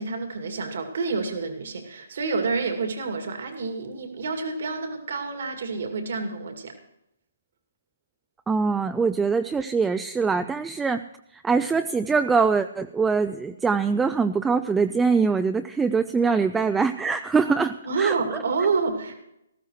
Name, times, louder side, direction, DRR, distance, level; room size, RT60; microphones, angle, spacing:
voice 1, 0.0-6.8 17.9-19.2, right 4 dB, 65° right, 5 dB, 2.4 m, -28 dB
voice 2, 8.5-11.0 11.3-18.4, right 5 dB, 10° right, 9 dB, 0.4 m, -23 dB
19.0 x 14.0 x 3.2 m, 0.82 s
hypercardioid pair, 145°, 0 cm